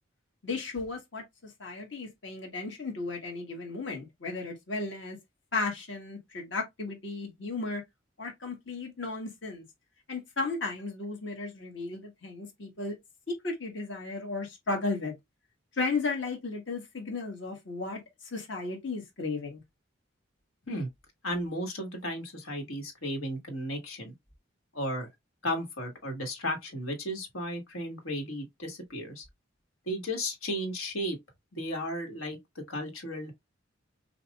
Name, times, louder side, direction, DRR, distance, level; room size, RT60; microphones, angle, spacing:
voice 1, 0.4-5.2 5.5-7.8 8.2-9.6 10.1-12.9 13.3-15.2 15.8-19.6, left 3 dB, 60° left, 1.6 m, -35 dB
voice 2, 21.2-24.1 24.7-25.1 25.4-29.2 29.8-31.2 31.5-33.3, equal, 85° left, 1.7 m, -34 dB
5.8 x 2.5 x 2.4 m
head